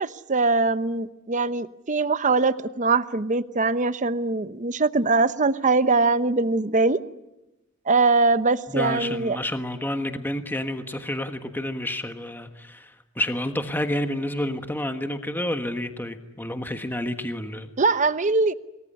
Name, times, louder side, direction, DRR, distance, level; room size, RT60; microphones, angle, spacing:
voice 1, 0.0-7.0 7.9-9.4 17.8-18.5, right 3 dB, 35° right, 0.9 m, -22 dB
voice 2, 8.7-17.7, left 1 dB, 10° left, 1.4 m, -29 dB
28.0 x 20.0 x 9.9 m
head